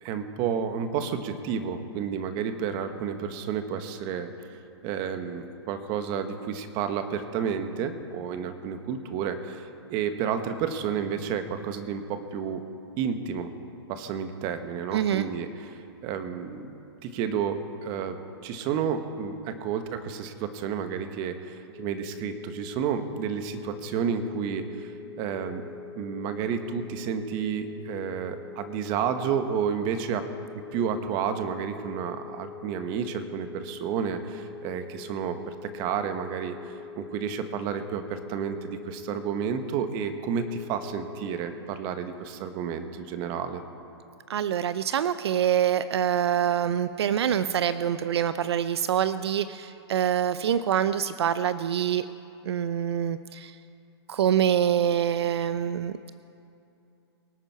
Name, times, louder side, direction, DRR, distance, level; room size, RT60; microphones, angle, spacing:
voice 1, 0.0-4.6 4.8-12.6 13.0-13.5 13.9-16.7 17.0-24.9 25.2-25.6 26.0-30.3 30.7-43.6, right 7 dB, 30° right, 8 dB, 1.1 m, -31 dB
voice 2, 14.9-15.3 44.3-52.0 52.4-53.6 54.1-56.1, right 9 dB, 75° right, 13 dB, 0.5 m, -25 dB
sound 1, 21.7-41.4, left 5 dB, 5° right, 1.6 m, -44 dB
24.5 x 9.1 x 4.6 m, 2.7 s
hypercardioid pair, 145°, 14 cm